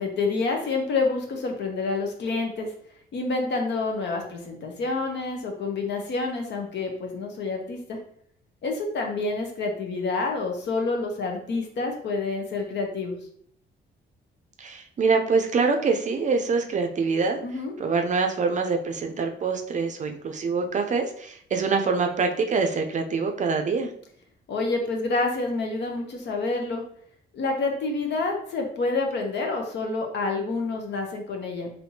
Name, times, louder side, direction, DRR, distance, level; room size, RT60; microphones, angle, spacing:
voice 1, 0.0-2.7 3.1-8.0 8.6-13.1 17.4-17.7 24.5-26.8 27.3-31.7, left 3 dB, 60° left, 2 dB, 0.7 m, -28 dB
voice 2, 14.6-17.4 17.8-23.9, right 4 dB, 40° right, 4 dB, 0.5 m, -25 dB
3.4 x 2.7 x 2.7 m, 0.65 s
cardioid pair, 90°, 20 cm